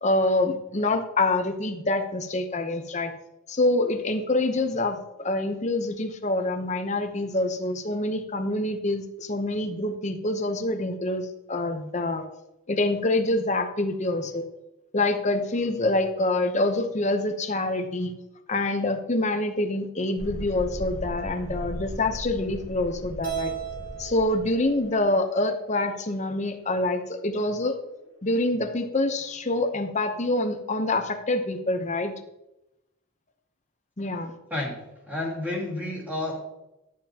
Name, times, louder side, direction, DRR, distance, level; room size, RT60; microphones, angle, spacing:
voice 1, 0.0-3.1 3.5-12.3 12.7-14.4 14.9-18.1 18.5-23.5 24.0-27.8 28.2-32.1 34.0-34.4, left 2 dB, 30° left, 6 dB, 0.8 m, -26 dB
Thunderstorm, 20.2-27.6, left 1 dB, 65° left, 1.3 m, -39 dB
Keyboard (musical), 23.2-25.6, right 11 dB, 85° right, 3.4 m, -36 dB
voice 2, 34.5-36.4, left 2 dB, 5° right, -3 dB, 2.3 m, -31 dB
11.5 x 9.4 x 2.9 m, 0.93 s
head